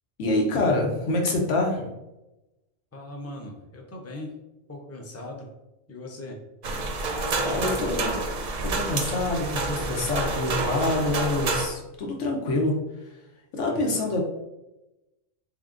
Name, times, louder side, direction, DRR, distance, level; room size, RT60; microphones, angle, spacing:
voice 1, 0.2-1.9 7.4-8.2 8.6-13.1 13.5-14.2, left 2 dB, 90° left, 0 dB, 1.1 m, -26 dB
voice 2, 2.9-4.3 4.7-5.5 5.9-6.4 13.6-14.1, left 1 dB, 20° left, 0 dB, 0.4 m, -39 dB
sound 1, 6.6-11.7, right 3 dB, 50° right, 0.5 m, -28 dB
3.6 x 3.6 x 2.5 m, 0.97 s
omnidirectional pair, 1.2 m